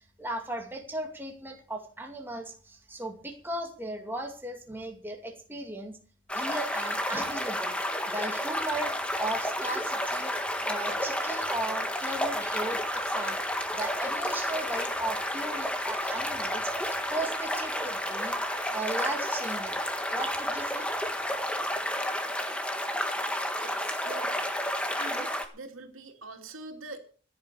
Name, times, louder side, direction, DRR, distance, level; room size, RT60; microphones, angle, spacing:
voice 1, 0.2-5.9 6.3-7.7 8.1-8.9 9.2-10.3 10.7-18.4 18.7-19.8 20.1-20.9, right 1 dB, 10° right, 2 dB, 2.3 m, -36 dB
sound 1, 6.3-25.5, equal, 5° left, 1.6 m, -31 dB
voice 2, 23.6-24.5 25.0-27.0, right 2 dB, 90° right, 4 dB, 2.9 m, -44 dB
15.5 x 8.8 x 7.0 m, 0.41 s
head